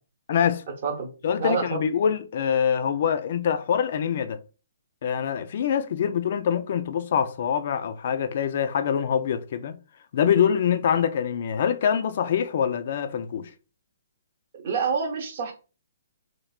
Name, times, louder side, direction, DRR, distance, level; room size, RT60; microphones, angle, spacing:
voice 1, 0.3-0.6 1.2-4.4 5.0-9.8 10.1-13.5, left 8 dB, 45° left, 0.3 m, -24 dB
voice 2, 1.4-1.8 14.6-15.5, right 5 dB, 45° right, 0.8 m, -27 dB
3.2 x 2.1 x 2.3 m
hypercardioid pair, 165°, 0 cm